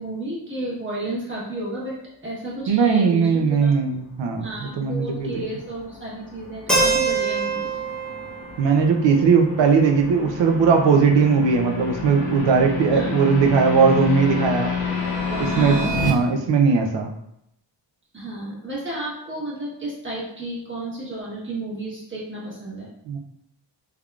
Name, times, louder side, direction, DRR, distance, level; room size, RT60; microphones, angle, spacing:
voice 1, 0.0-1.9 2.2-3.7 4.4-7.8 12.9-13.2 15.3-16.3 18.1-22.9, right 1 dB, 25° right, -6 dB, 1.1 m, -32 dB
voice 2, 2.7-5.3 8.6-14.7 15.6-17.1 23.1-23.2, right 5 dB, 70° right, 5 dB, 0.6 m, -19 dB
sound 1, 4.6-16.1, left 4 dB, 55° left, 0.6 m, -30 dB
Keyboard (musical), 6.7-10.6, right 3 dB, ahead, 0.7 m, -26 dB
3.6 x 3.4 x 2.3 m, 0.78 s
wide cardioid pair, 170°, 45 cm